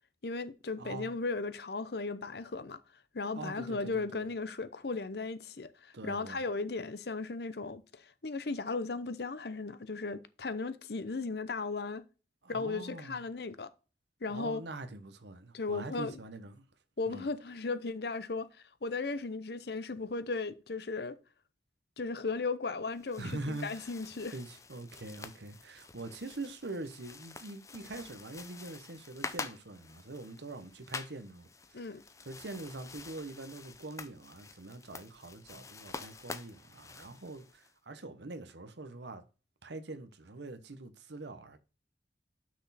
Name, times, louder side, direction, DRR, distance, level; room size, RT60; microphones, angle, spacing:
voice 1, 0.2-2.8 3.1-12.0 12.5-13.7 14.2-14.6 15.5-16.2 17.0-18.5 18.8-21.2 22.0-24.3 31.7-32.0, left 3 dB, 65° left, 0.7 m, -36 dB
voice 2, 0.8-1.2 3.3-4.3 5.9-6.4 12.4-13.2 14.3-16.7 17.1-17.3 23.2-23.9 24.3-32.0 32.2-39.3 39.6-41.6, right 2 dB, 75° right, 1.0 m, -44 dB
sound 1, 22.9-37.7, left 4 dB, 15° left, 0.5 m, -47 dB
6.2 x 6.2 x 4.2 m
head